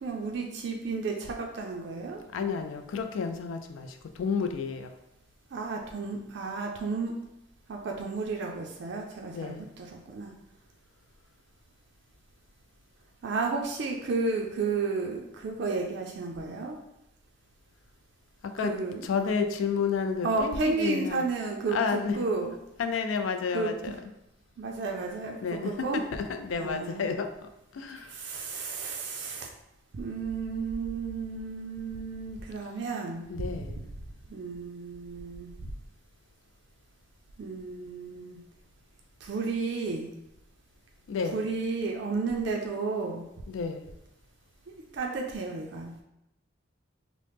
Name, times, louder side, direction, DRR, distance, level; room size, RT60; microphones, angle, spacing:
voice 1, 0.0-2.2 5.5-7.1 7.7-10.3 13.2-16.8 18.6-19.1 20.2-22.5 23.5-23.7 24.6-26.0 26.6-27.1 27.9-29.5 29.9-33.5 34.3-35.5 37.4-38.4 39.2-40.1 41.3-43.3 44.7-45.9, right 4 dB, 60° right, 0 dB, 0.3 m, -32 dB
voice 2, 2.3-4.9 9.3-9.6 18.4-18.7 19.0-21.2 21.7-22.2 22.8-24.0 25.4-28.2 33.3-33.8 41.1-41.4 43.5-43.8, left 5 dB, 80° left, 7 dB, 0.3 m, -31 dB
3.0 x 2.0 x 3.3 m, 0.86 s
head